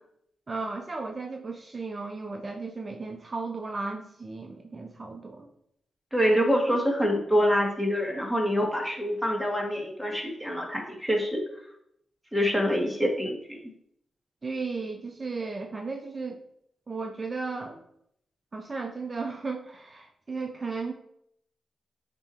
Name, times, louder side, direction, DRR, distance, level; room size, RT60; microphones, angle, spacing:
voice 1, 0.5-5.5 14.4-16.4 16.9-17.8 18.5-20.9, right 4 dB, 35° right, 3 dB, 0.7 m, -35 dB
voice 2, 6.1-11.4 12.3-13.7, equal, ahead, -1 dB, 1.9 m, -26 dB
8.5 x 3.0 x 4.4 m, 0.73 s
cardioid pair, 60°, 0 cm